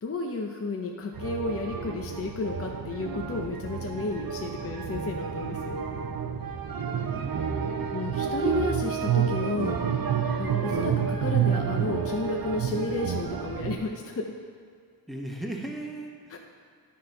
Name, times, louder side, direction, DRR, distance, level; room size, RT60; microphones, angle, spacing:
voice 1, 0.0-5.8 7.9-9.8 10.4-14.3 16.3-16.4, left 3 dB, 35° left, 1 dB, 0.6 m, -32 dB
sound 1, 1.1-13.8, right 7 dB, 55° right, 0.7 m, -29 dB
voice 2, 15.1-16.4, right 1 dB, ahead, 0 dB, 1.1 m, -39 dB
10.0 x 4.3 x 5.2 m, 2.1 s
wide cardioid pair, 80°, 42 cm